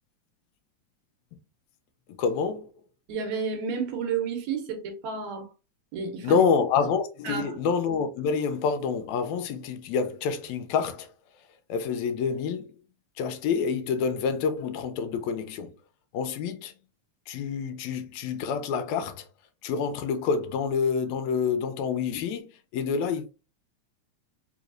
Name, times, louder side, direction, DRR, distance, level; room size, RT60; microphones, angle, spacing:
voice 1, 2.2-2.7 6.2-11.1 11.7-12.7 13.2-15.7 16.1-16.7 17.3-19.3 19.6-23.2, left 6 dB, 80° left, 1.8 m, -27 dB
voice 2, 3.1-5.5 5.9-6.4 7.2-7.6, right 5 dB, 75° right, 2.1 m, -31 dB
4.7 x 3.0 x 2.5 m
omnidirectional pair, 3.4 m